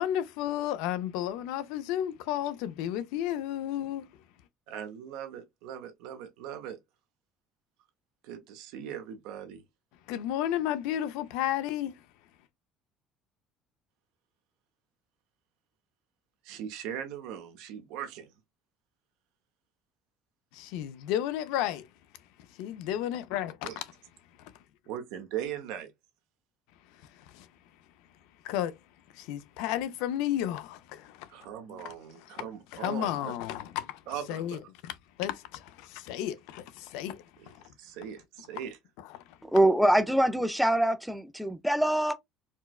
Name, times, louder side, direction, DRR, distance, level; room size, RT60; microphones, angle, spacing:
voice 1, 0.0-4.1 10.1-12.0 20.5-21.9 22.6-23.8 24.4-24.5 27.3-27.5 28.4-28.7 29.1-31.3 31.7-31.9 32.3-32.4 32.7-34.0 34.3-37.6 39.1-39.4, left 11 dB, 80° left, 0.4 m, -33 dB
voice 2, 4.7-6.8 8.2-9.6 16.4-18.3 23.6-23.8 24.9-25.9 31.3-33.3 34.1-34.6 37.4-37.5 37.8-38.8, right 9 dB, 75° right, 0.9 m, -39 dB
voice 3, 39.4-42.1, right 1 dB, ahead, 0.3 m, -24 dB
4.4 x 2.1 x 2.3 m
cardioid pair, 180°, 0 cm